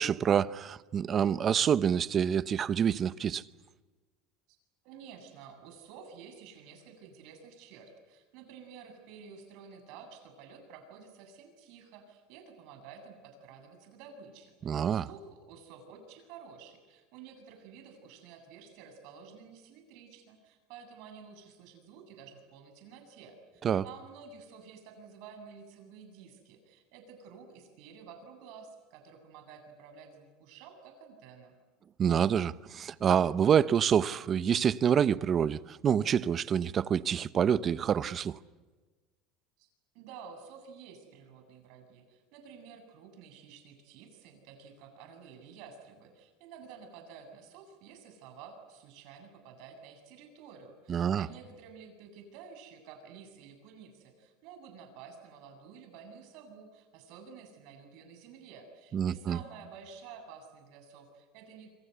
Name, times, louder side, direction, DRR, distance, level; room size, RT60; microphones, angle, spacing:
voice 1, 0.0-3.4 14.6-15.1 23.6-23.8 32.0-38.4 50.9-51.3 58.9-59.4, right 8 dB, 30° right, 0.8 m, -27 dB
voice 2, 4.8-14.5 14.9-31.5 39.6-39.7 39.9-61.7, right 6 dB, 65° right, 7.9 m, -51 dB
27.0 x 26.0 x 8.2 m
supercardioid pair, 135°, 0 cm